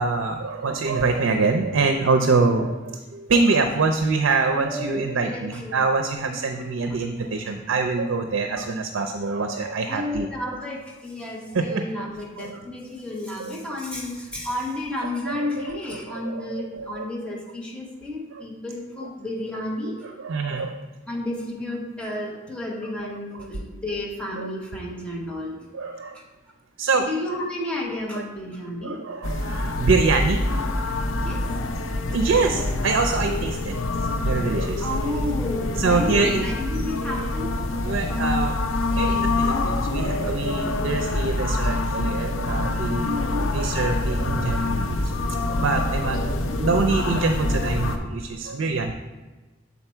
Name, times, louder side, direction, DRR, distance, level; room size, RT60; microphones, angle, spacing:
voice 1, 0.0-10.3 11.5-12.1 12.4-12.6 13.4-13.8 15.4-17.1 18.3-18.4 19.0-19.1 20.0-20.8 23.3-23.5 24.4-24.5 25.7-26.2 26.8-27.1 28.8-30.5 32.1-33.8 34.1-34.9 35.8-36.5 37.8-38.6 38.9-43.2 43.5-48.9, right 4 dB, 85° right, 5 dB, 0.5 m, -25 dB
voice 2, 4.6-5.7 6.3-6.5 6.8-7.0 9.9-20.0 21.1-25.6 26.1-26.2 27.0-29.0 31.1-31.4 34.8-37.5 43.0-43.5 46.0-46.2 46.5-46.9, left 1 dB, 5° left, -3 dB, 1.2 m, -32 dB
sound 1, 29.2-48.0, left 2 dB, 90° left, 0.6 m, -26 dB
7.0 x 4.2 x 4.4 m, 1.2 s
head